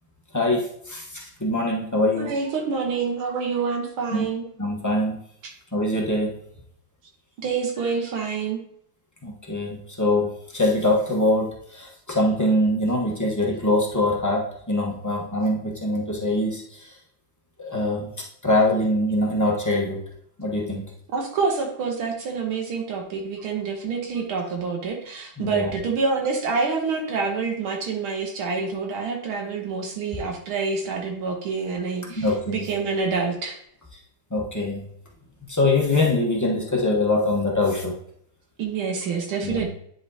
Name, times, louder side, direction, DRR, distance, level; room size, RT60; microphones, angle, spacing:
voice 1, 0.3-2.3 4.1-4.3 4.6-5.2 5.7-6.3 9.2-10.3 10.5-16.9 17.6-20.0 20.4-20.8 25.4-25.7 32.1-32.7 34.3-34.8 35.5-37.9 39.4-39.7, left 1 dB, 20° left, -2 dB, 0.4 m, -23 dB
voice 2, 2.2-4.5 7.4-8.7 21.1-33.6 38.6-39.7, right 5 dB, 80° right, 1 dB, 1.8 m, -27 dB
10.5 x 4.3 x 2.8 m, 0.68 s
omnidirectional pair, 2.3 m